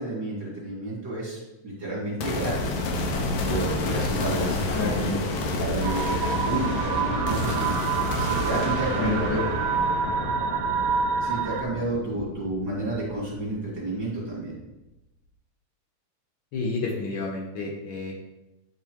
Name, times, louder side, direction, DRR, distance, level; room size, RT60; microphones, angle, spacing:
voice 1, 0.0-2.8 3.4-5.1 5.6-9.5 11.2-14.6, right 2 dB, 35° right, -6 dB, 2.2 m, -31 dB
sound 1, 2.2-13.6, left 2 dB, 70° left, 1.5 m, -29 dB
voice 2, 4.7-5.2 9.0-9.4 16.5-18.1, left 3 dB, 90° left, -2 dB, 1.1 m, -30 dB
sound 2, 5.8-11.6, right 6 dB, 85° right, 2.1 m, -28 dB
9.5 x 3.7 x 4.5 m, 0.97 s
omnidirectional pair, 3.7 m